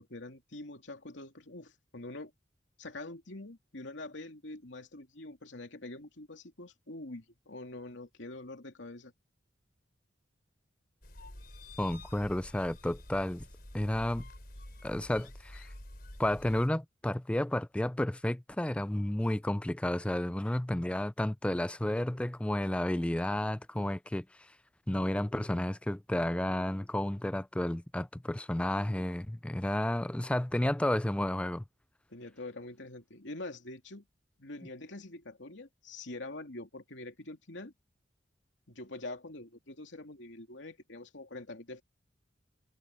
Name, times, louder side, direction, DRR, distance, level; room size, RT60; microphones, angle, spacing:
voice 1, 0.0-2.3 2.8-9.1 32.1-34.0 34.4-37.7 38.7-41.8, left 2 dB, 75° left, 2.8 m, -45 dB
sound 1, 11.0-16.7, left 1 dB, 55° left, 4.7 m, -48 dB
voice 2, 11.8-13.5 13.7-14.2 14.8-15.6 16.2-24.3 24.9-31.6, left 1 dB, 5° left, 0.3 m, -31 dB
head